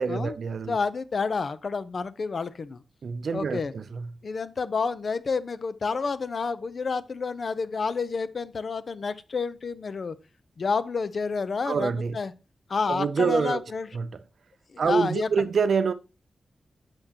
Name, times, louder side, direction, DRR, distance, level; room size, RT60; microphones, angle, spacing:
voice 1, 0.0-0.8 3.0-4.1 11.7-12.2 12.9-13.6 13.9-14.1 14.8-15.9, right 5 dB, 65° right, 0.5 m, -26 dB
voice 2, 0.7-2.8 3.3-3.7 4.2-10.1 10.6-12.3 12.7-13.9 14.7-15.3, left 4 dB, 50° left, 0.5 m, -29 dB
8.8 x 6.0 x 2.8 m
wide cardioid pair, 125°, 0 cm